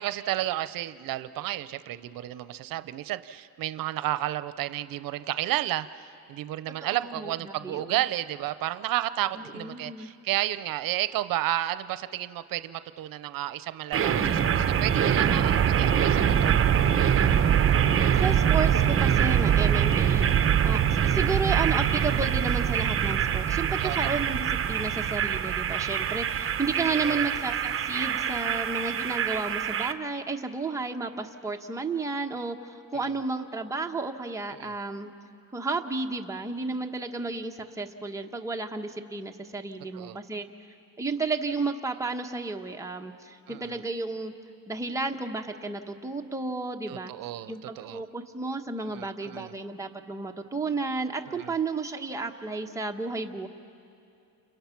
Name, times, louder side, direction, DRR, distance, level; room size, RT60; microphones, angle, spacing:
voice 1, 0.0-16.9 23.8-24.0 26.9-27.3 34.6-34.7 39.9-40.2 43.5-43.8 46.9-48.0 48.8-49.5 51.3-51.5, right 14 dB, 80° right, 14 dB, 0.7 m, -32 dB
voice 2, 6.8-8.0 9.5-10.1 18.2-20.3 20.6-35.1 35.5-40.5 41.0-44.3 44.7-47.1 47.5-53.5, right 3 dB, 10° right, 2 dB, 1.1 m, -32 dB
sound 1, 13.9-29.9, right 9 dB, 40° right, 0.9 m, -24 dB
29.5 x 29.0 x 5.9 m, 2.6 s
cardioid pair, 130°, 33 cm